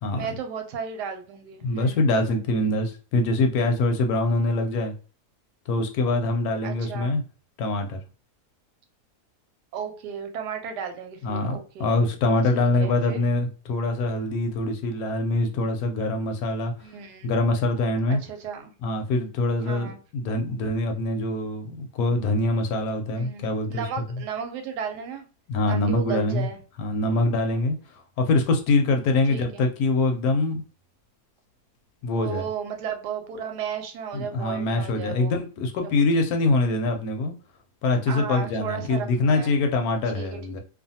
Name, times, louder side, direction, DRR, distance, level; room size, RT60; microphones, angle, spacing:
voice 1, 0.1-2.1 6.6-7.2 9.7-12.1 12.5-13.2 16.8-17.3 18.1-18.7 19.7-20.0 23.1-25.2 25.7-26.6 27.4-27.6 29.3-29.7 32.1-35.3 35.8-36.2 38.1-39.6 40.1-40.6, right 7 dB, 90° right, 5 dB, 1.2 m, -35 dB
voice 2, 1.6-4.9 5.7-7.2 7.6-8.0 11.2-16.7 17.2-18.2 18.8-23.8 25.5-26.5 26.8-27.8 28.2-30.6 32.0-32.5 34.1-37.3 37.8-40.6, left 2 dB, 75° left, 5 dB, 1.0 m, -24 dB
2.5 x 2.5 x 2.7 m, 0.36 s
omnidirectional pair, 1.7 m